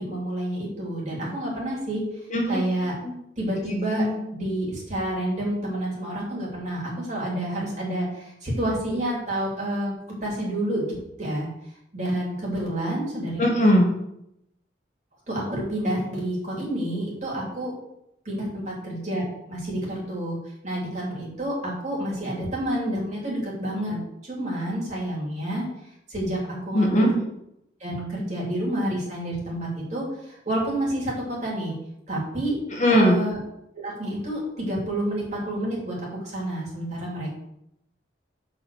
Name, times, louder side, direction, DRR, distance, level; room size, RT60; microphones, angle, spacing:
voice 1, 0.0-2.0 2.5-2.9 3.4-4.1 4.3-11.5 11.9-13.4 15.3-17.8 18.2-19.2 19.5-20.4 20.6-25.7 26.1-27.1 27.8-31.7 32.1-32.6 32.9-33.4 33.7-36.0 36.2-37.4, right 1 dB, 40° right, -4 dB, 3.4 m, -29 dB
voice 2, 2.3-2.6 3.0-3.1 3.6-4.2 13.4-13.9 26.7-27.1 32.7-33.2, equal, 40° left, -1 dB, 1.5 m, -20 dB
7.0 x 5.3 x 6.4 m, 0.80 s
head